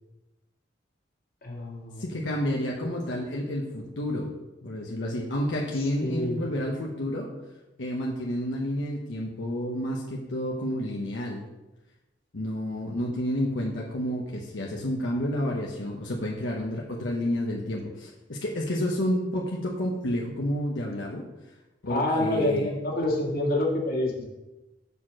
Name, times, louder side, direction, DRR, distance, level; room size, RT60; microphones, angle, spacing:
voice 1, 1.4-2.1 6.0-6.4 21.9-24.3, left 1 dB, 55° left, -2 dB, 1.8 m, -27 dB
voice 2, 2.0-4.3 4.6-7.3 7.8-11.4 12.3-21.2 21.8-22.8, left 1 dB, 80° left, -2 dB, 1.0 m, -30 dB
6.9 x 4.3 x 6.3 m, 1.0 s
head